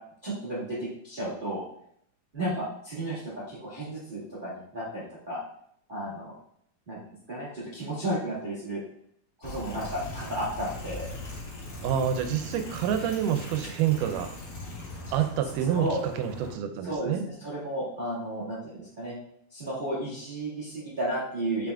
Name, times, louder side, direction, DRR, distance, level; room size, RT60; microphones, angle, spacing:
voice 1, 0.2-1.6 2.3-5.4 5.9-6.3 6.9-7.0 7.3-8.8 9.4-11.1 15.7-16.0 16.8-17.1 17.4-19.2 19.5-21.7, right 1 dB, 45° right, -10 dB, 0.6 m, -33 dB
sound 1, 9.4-16.5, left 2 dB, 45° left, 1.8 m, -40 dB
voice 2, 11.8-14.3 15.1-17.3, right 9 dB, 85° right, 7 dB, 2.1 m, -27 dB
5.3 x 2.4 x 3.4 m, 0.68 s
omnidirectional pair, 3.7 m